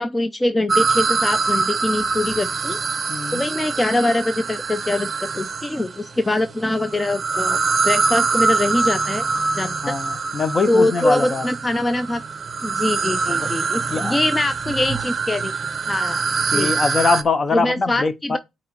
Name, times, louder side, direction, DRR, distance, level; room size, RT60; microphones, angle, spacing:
voice 1, 0.0-2.8 3.3-7.6 7.8-9.2 9.5-9.9 10.7-12.2 12.6-15.5 15.9-16.7 17.5-18.4, left 2 dB, 15° left, 0.5 m, -23 dB
sound 1, 0.7-5.9 6.7-17.2, right 4 dB, 35° right, 0.6 m, -24 dB
voice 2, 3.1-3.4 9.8-11.5 13.3-13.5 13.9-14.2 16.5-18.4, left 4 dB, 35° left, 0.8 m, -22 dB
8.4 x 3.0 x 4.3 m
cardioid pair, 90°, 0 cm